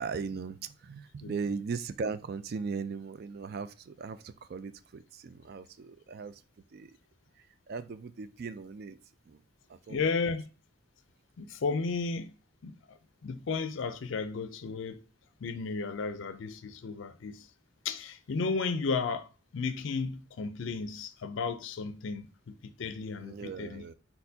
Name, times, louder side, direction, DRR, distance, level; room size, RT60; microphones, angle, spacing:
voice 1, 0.0-6.4 6.7-6.9 7.7-9.0 9.3-9.4 9.7-10.0 23.2-23.9, right 5 dB, 50° right, 0.3 m, -38 dB
voice 2, 9.9-10.5 11.4-12.3 12.6-15.0 15.4-17.5 17.8-23.8, left 4 dB, 65° left, 0.4 m, -34 dB
4.3 x 4.2 x 2.7 m
head